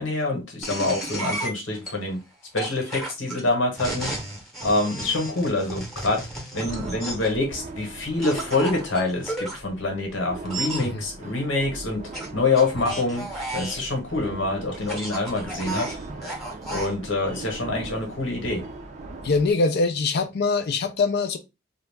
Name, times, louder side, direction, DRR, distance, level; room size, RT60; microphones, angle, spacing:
voice 1, 0.0-2.2 2.5-4.2 4.6-6.2 6.5-16.0 16.7-18.6, left 2 dB, 80° left, 1.1 m, -26 dB
sound 1, 0.6-1.9 2.6-7.4 8.2-9.6 10.5-10.9 12.1-13.9 14.7-16.9, right 1 dB, ahead, 0.8 m, -33 dB
sound 2, 6.5-19.5, right 2 dB, 40° right, 0.4 m, -40 dB
voice 2, 19.2-21.4, left 3 dB, 55° left, 0.4 m, -23 dB
2.3 x 2.0 x 3.2 m
head